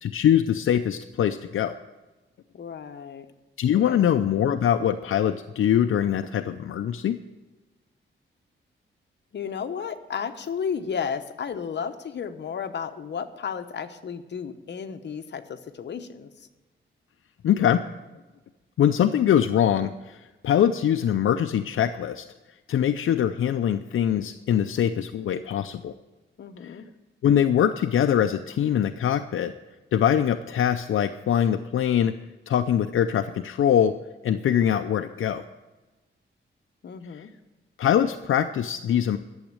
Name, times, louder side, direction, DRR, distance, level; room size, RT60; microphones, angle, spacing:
voice 1, 0.0-1.7 3.6-7.2 17.4-17.8 18.8-22.2 22.7-25.9 26.6-26.8 27.2-29.5 29.9-32.1 32.5-33.9 34.2-35.4 37.1-37.2 37.8-39.2, left 9 dB, 75° left, 8 dB, 0.5 m, -23 dB
voice 2, 2.5-3.3 3.9-4.1 9.3-16.5 26.4-26.9 36.8-37.3, left 7 dB, 55° left, 7 dB, 1.0 m, -33 dB
12.0 x 7.3 x 8.8 m, 1.1 s
wide cardioid pair, 135°, 21 cm